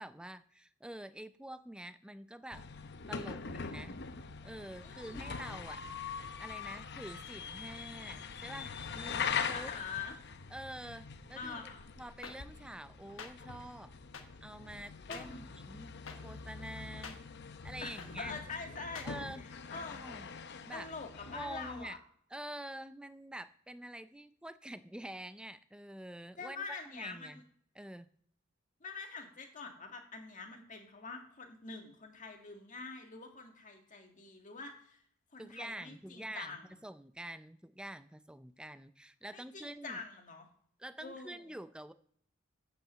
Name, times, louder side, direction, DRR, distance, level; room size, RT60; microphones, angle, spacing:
voice 1, 0.0-2.7 3.1-4.0 4.4-5.8 6.4-9.7 10.5-11.7 12.0-13.9 14.4-15.9 16.2-17.2 17.6-18.4 19.0-19.4 20.0-20.3 20.7-20.9 21.3-22.0 22.3-27.4 27.8-28.1 35.4-40.0 40.8-41.9, right 1 dB, 5° right, 13 dB, 0.4 m, -47 dB
sound 1, 2.5-21.9, left 6 dB, 60° left, 0.7 m, -43 dB
voice 2, 4.8-5.3 9.1-10.2 11.4-11.9 15.1-15.4 16.9-17.0 17.8-19.1 19.4-20.0 20.7-22.0 26.4-27.4 28.8-35.0 35.3-36.6 39.3-40.5 41.0-41.6, left 4 dB, 40° left, 3 dB, 1.8 m, -45 dB
sound 2, 12.2-12.3 13.2-13.3 14.1-14.2 15.1-15.2 16.1-16.2 17.0-17.2 18.0-18.1 18.9-19.1, left 5 dB, 80° left, 1.3 m, -45 dB
9.3 x 5.6 x 7.4 m, 0.64 s
head